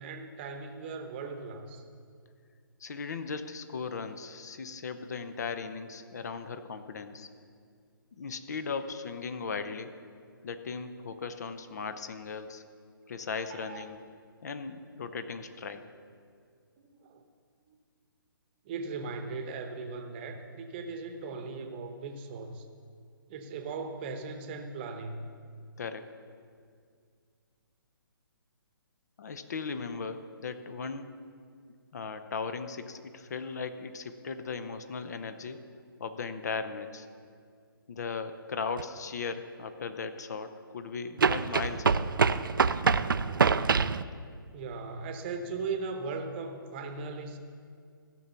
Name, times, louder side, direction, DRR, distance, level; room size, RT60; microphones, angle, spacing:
voice 1, 0.0-1.8 13.5-13.8 17.0-17.2 18.6-22.6 23.3-25.3 44.5-47.4, right 4 dB, 25° right, 6 dB, 0.9 m, -38 dB
voice 2, 2.8-7.3 8.1-9.9 10.4-12.6 13.1-14.0 14.4-15.9 25.8-26.1 29.2-31.1 31.9-35.6 36.0-37.1 37.9-42.1, left 5 dB, 45° left, 10 dB, 0.7 m, -37 dB
sound 1, 38.8-38.9 41.2-44.0, right 5 dB, 65° right, 0.4 m, -25 dB
15.0 x 6.2 x 7.0 m, 2.1 s
figure-of-eight pair, 135°, 12 cm